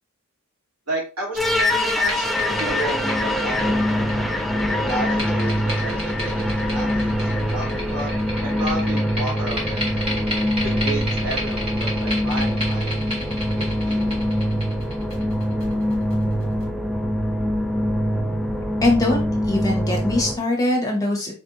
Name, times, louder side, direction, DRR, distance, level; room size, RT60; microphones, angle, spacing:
voice 1, 0.9-4.0 4.7-8.1 8.4-10.0 10.6-12.9 13.5-14.4, right 2 dB, 80° right, -4 dB, 2.7 m, -32 dB
sound 1, 1.3-16.6, equal, 25° right, 1.7 m, -33 dB
sound 2, 1.4-20.4, left 1 dB, ahead, 0.5 m, -23 dB
voice 2, 18.8-21.3, left 2 dB, 15° left, 0 dB, 1.2 m, -22 dB
4.5 x 4.4 x 2.7 m, 0.34 s
head